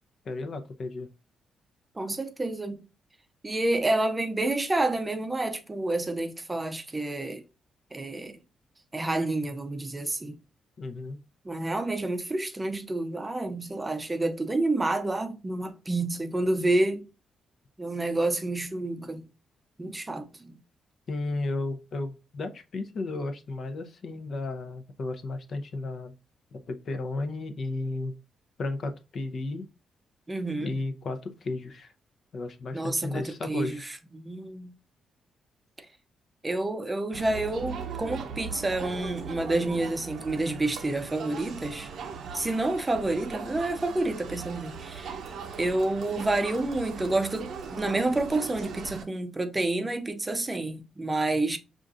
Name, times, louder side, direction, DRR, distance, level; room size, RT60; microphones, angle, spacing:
voice 1, 0.3-1.1 10.8-11.2 21.1-26.1 26.5-28.1 28.6-29.7 30.6-31.9 32.3-33.8, left 2 dB, 55° left, 0.6 m, -33 dB
voice 2, 2.0-2.8 3.4-7.4 7.9-8.4 8.9-10.4 11.4-17.0 17.8-19.2 19.8-20.6 30.3-30.8 32.7-34.7 36.4-41.9 42.3-45.2 45.6-51.6, right 2 dB, 20° right, 0.5 m, -29 dB
Crowd, 37.1-49.0, right 6 dB, 70° right, 0.6 m, -39 dB
5.2 x 2.5 x 2.4 m
cardioid pair, 85°, 0 cm